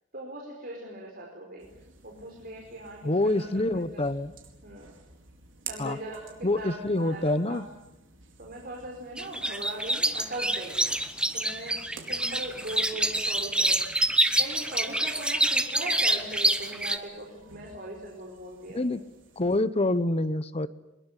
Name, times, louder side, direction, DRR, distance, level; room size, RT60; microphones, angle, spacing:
voice 1, 0.1-1.7 2.0-3.5 3.9-4.1 4.6-4.9 5.7-7.6 8.4-10.8 11.3-13.8 14.4-18.8, right 1 dB, 50° right, 0 dB, 4.9 m, -40 dB
sound 1, 1.6-19.6, right 5 dB, 75° right, 4.6 m, -51 dB
voice 2, 3.0-4.3 5.8-6.0 6.4-7.6 18.7-19.0 19.4-20.7, left 2 dB, 30° left, 14 dB, 1.0 m, -26 dB
sound 2, 9.2-17.0, right 1 dB, 5° right, 1.3 m, -26 dB
23.0 x 22.0 x 10.0 m, 0.91 s
head